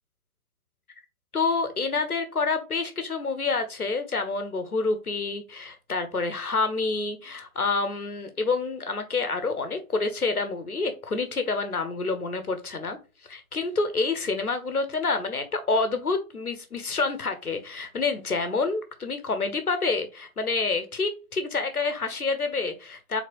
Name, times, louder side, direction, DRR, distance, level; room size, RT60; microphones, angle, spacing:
voice 1, 1.3-13.0 13.3-23.2, left 3 dB, 85° left, 8 dB, 1.1 m, -28 dB
4.2 x 3.8 x 3.0 m, 0.30 s
figure-of-eight pair, 110°, 43 cm